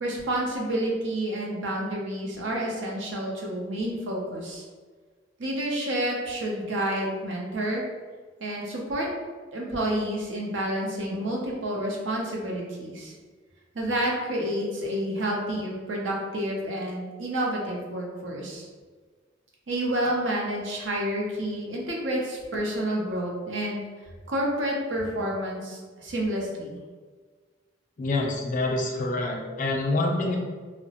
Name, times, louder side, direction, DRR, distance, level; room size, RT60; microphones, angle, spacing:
voice 1, 0.0-4.6 5.4-7.8 8.4-9.1 9.5-13.1 13.7-18.6 19.7-23.8 24.3-26.8, right 1 dB, 85° right, -2 dB, 0.6 m, -29 dB
voice 2, 28.0-30.4, left 2 dB, 45° left, 0 dB, 0.4 m, -26 dB
2.8 x 2.1 x 2.8 m, 1.5 s
head